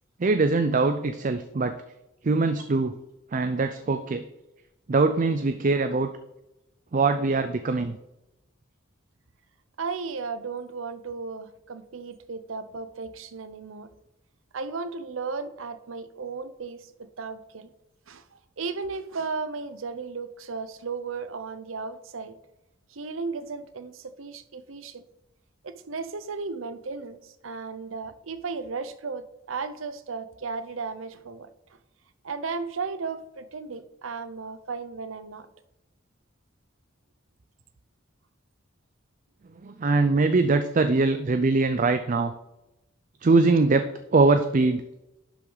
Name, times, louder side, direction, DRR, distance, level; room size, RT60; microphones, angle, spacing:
voice 1, 0.2-1.7 2.2-3.0 3.3-4.2 4.9-6.1 6.9-8.0 39.6-42.3 43.2-44.8, right 3 dB, 40° right, 9 dB, 0.4 m, -22 dB
voice 2, 9.8-13.9 14.5-17.7 18.1-22.4 22.9-25.0 25.6-31.5 32.2-35.5, right 4 dB, 80° right, 12 dB, 0.7 m, -35 dB
11.0 x 6.0 x 4.0 m, 0.91 s
head